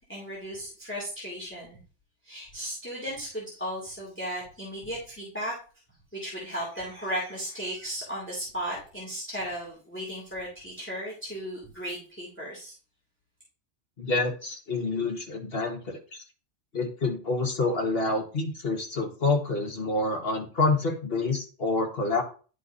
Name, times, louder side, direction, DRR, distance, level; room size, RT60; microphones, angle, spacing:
voice 1, 0.1-1.8 2.2-5.5 6.1-12.7, equal, 10° left, -4 dB, 2.3 m, -35 dB
voice 2, 14.0-16.0 16.7-22.2, left 3 dB, 50° left, 1 dB, 1.7 m, -27 dB
11.0 x 4.6 x 2.7 m, 0.38 s
omnidirectional pair, 1.3 m